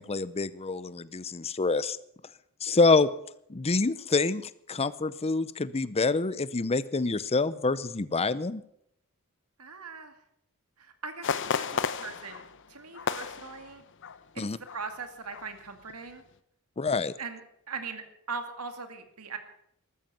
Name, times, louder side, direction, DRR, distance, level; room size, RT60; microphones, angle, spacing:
voice 1, 0.0-2.0 2.6-3.1 3.5-8.6 14.4-14.6 16.8-17.1, left 3 dB, 30° left, 16 dB, 0.6 m, -26 dB
voice 2, 9.6-10.2 10.8-13.8 14.3-14.4 14.7-16.2 17.2-17.4 17.7-19.4, right 4 dB, 85° right, 7 dB, 2.2 m, -40 dB
sound 1, 11.2-14.3 14.6-14.8 15.3-15.7 16.1-16.2, left 6 dB, 60° left, 0.8 m, -33 dB
14.5 x 13.0 x 7.2 m, 0.73 s
head